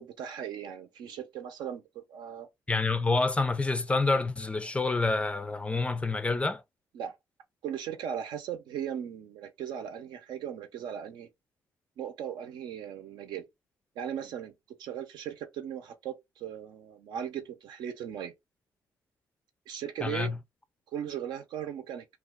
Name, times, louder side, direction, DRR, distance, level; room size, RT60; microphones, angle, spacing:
voice 1, 0.0-2.5 6.9-7.2 7.6-11.3 12.0-13.4 14.0-18.3 19.7-20.3 20.9-22.0, right 9 dB, 90° right, 0.7 m, -38 dB
voice 2, 2.7-6.6 20.0-20.4, left 3 dB, 15° left, 0.4 m, -28 dB
2.7 x 2.3 x 3.6 m
cardioid pair, 115°, 7 cm